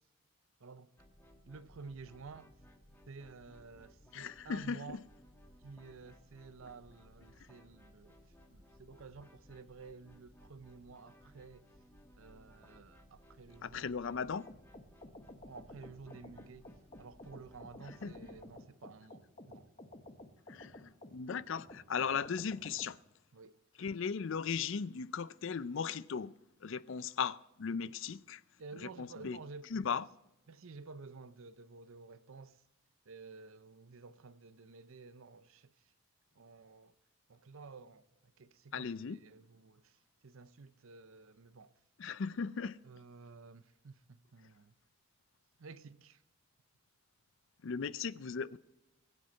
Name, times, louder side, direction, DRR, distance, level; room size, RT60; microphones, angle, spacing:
voice 1, 0.6-0.9 1.4-2.5 3.1-5.0 5.6-8.2 8.5-11.7 12.2-14.2 15.4-16.7 17.0-19.7 23.3-23.9 27.8-28.0 28.6-30.0 30.5-32.6 33.1-35.9 36.4-36.9 37.3-41.7 42.8-44.7 45.6-46.2, right 4 dB, 65° right, 0.6 m, -52 dB
sound 1, 1.0-18.5, equal, 10° left, 1.3 m, -61 dB
voice 2, 4.1-5.0 13.6-14.5 18.0-18.1 20.5-23.0 23.8-26.3 26.6-28.4 29.0-29.4 29.7-30.0 38.7-39.2 42.0-42.8 47.6-48.6, left 6 dB, 60° left, 0.4 m, -37 dB
sound 2, 14.2-22.9, left 1 dB, 30° left, 1.1 m, -53 dB
21.5 x 7.7 x 4.4 m
head